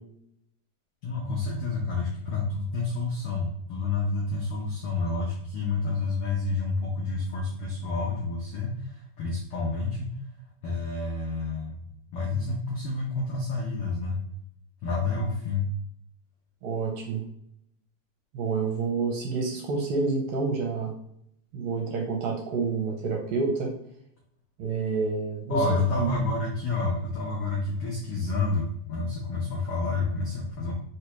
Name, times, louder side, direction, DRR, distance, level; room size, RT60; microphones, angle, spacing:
voice 1, 1.0-10.2 10.6-11.8 12.1-14.2 14.8-15.7 25.5-30.7, left 3 dB, 85° left, -3 dB, 1.2 m, -29 dB
voice 2, 16.6-17.2 18.3-20.9 21.5-23.7 24.6-26.1, right 4 dB, 70° right, 0 dB, 1.8 m, -28 dB
4.4 x 3.3 x 2.9 m, 0.72 s
omnidirectional pair, 3.5 m